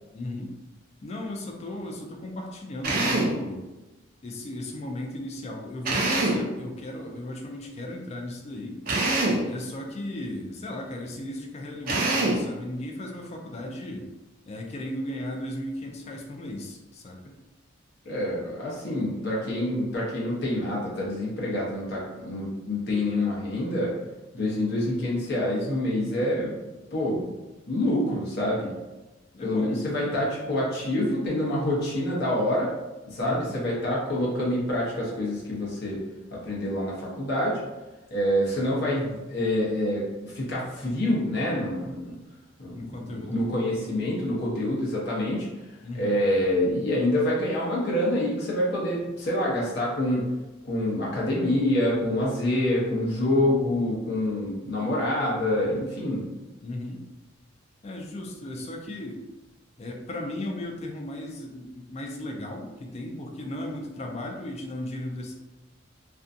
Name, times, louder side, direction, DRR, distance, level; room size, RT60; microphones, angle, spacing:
voice 1, 0.1-0.5 1.0-3.6 4.2-8.8 9.4-14.1 14.5-17.4 29.3-30.2 33.2-33.6 42.7-43.4 45.8-46.2 56.6-57.0 57.8-59.2 59.8-65.3, left 1 dB, 35° left, 1 dB, 0.3 m, -36 dB
Drill, 2.8-3.4 5.8-6.5 8.9-9.5 11.9-12.5, right 2 dB, 45° right, 0.4 m, -24 dB
voice 2, 18.0-23.9 24.3-26.6 26.9-27.3 27.7-28.7 29.4-32.7 33.0-36.0 36.3-37.6 38.1-42.2 42.6-50.3 50.6-56.3, left 1 dB, 55° left, -5 dB, 0.8 m, -26 dB
2.5 x 2.2 x 2.5 m, 1.1 s
head